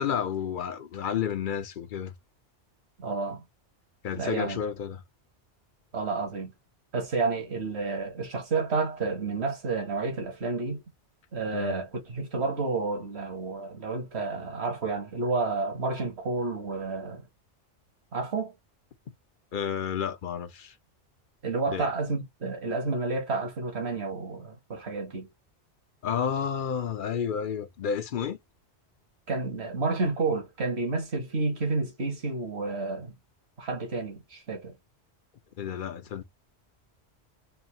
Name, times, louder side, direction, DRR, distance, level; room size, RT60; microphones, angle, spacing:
voice 1, 0.0-2.1 4.0-5.0 11.5-11.8 19.5-20.7 21.7-21.9 26.0-28.4 35.6-36.2, left 8 dB, 55° left, 0.7 m, -31 dB
voice 2, 3.0-3.4 4.2-4.6 5.9-6.5 6.9-10.8 11.3-17.2 18.1-18.5 21.4-25.3 29.3-33.1 33.6-34.8, right 3 dB, 65° right, 1.8 m, -30 dB
4.3 x 2.7 x 2.8 m
omnidirectional pair, 1.2 m